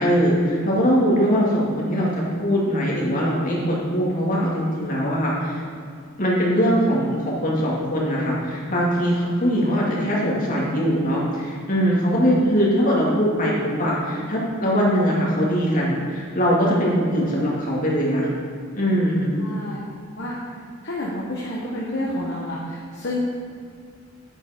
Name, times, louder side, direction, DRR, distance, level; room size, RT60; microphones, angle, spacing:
voice 1, 0.0-5.6 6.2-18.3 18.7-19.3, equal, 40° left, -5 dB, 2.4 m, -21 dB
voice 2, 19.4-19.8 20.2-20.4 20.8-23.2, left 1 dB, 55° left, -5 dB, 1.2 m, -29 dB
9.0 x 7.9 x 4.4 m, 2.3 s
head